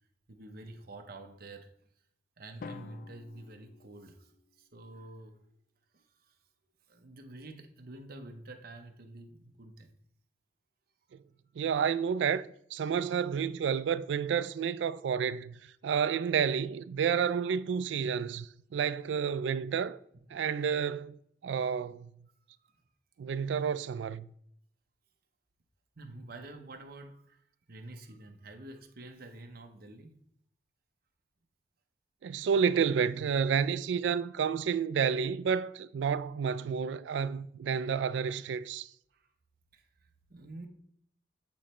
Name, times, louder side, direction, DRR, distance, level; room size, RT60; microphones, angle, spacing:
voice 1, 0.3-1.7 2.4-5.4 5.9-6.4 6.9-9.9 22.6-22.8 25.9-30.2 39.1-39.3 39.7-40.7, right 2 dB, 55° right, 0.9 m, -48 dB
Drum, 2.6-4.6, left 5 dB, 50° left, 0.3 m, -48 dB
voice 2, 11.6-15.6 15.8-20.0 20.3-21.2 21.4-22.1 23.2-24.3 32.2-38.9, right 7 dB, 85° right, 0.3 m, -30 dB
8.6 x 3.1 x 4.3 m
head